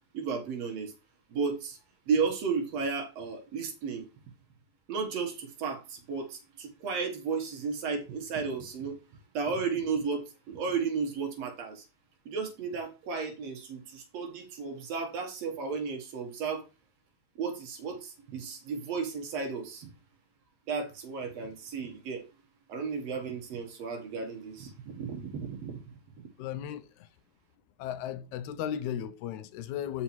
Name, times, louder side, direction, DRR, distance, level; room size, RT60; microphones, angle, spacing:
voice 1, 0.1-0.9 1.3-1.8 2.1-4.1 4.9-9.0 9.3-11.8 12.3-16.6 17.4-19.9 20.7-22.2 22.7-25.8, right 5 dB, 65° right, 2.1 m, -33 dB
voice 2, 26.4-27.1 27.8-30.0, left 9 dB, 85° left, 1.9 m, -35 dB
12.5 x 4.2 x 3.0 m
omnidirectional pair, 3.3 m